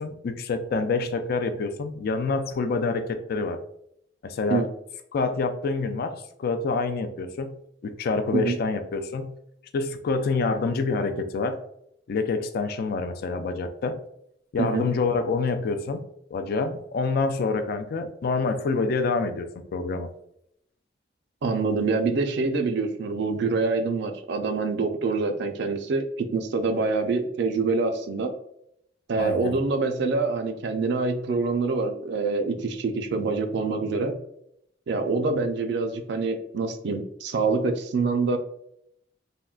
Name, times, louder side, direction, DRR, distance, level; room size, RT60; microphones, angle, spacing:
voice 1, 0.0-3.6 4.2-4.6 5.1-9.4 9.7-11.6 12.1-14.0 14.5-20.1 29.2-29.5, left 4 dB, 55° left, 7 dB, 0.3 m, -27 dB
voice 2, 21.4-28.3 29.1-34.2 34.9-38.4, right 4 dB, 65° right, 7 dB, 0.4 m, -25 dB
3.6 x 2.1 x 2.3 m, 0.75 s
head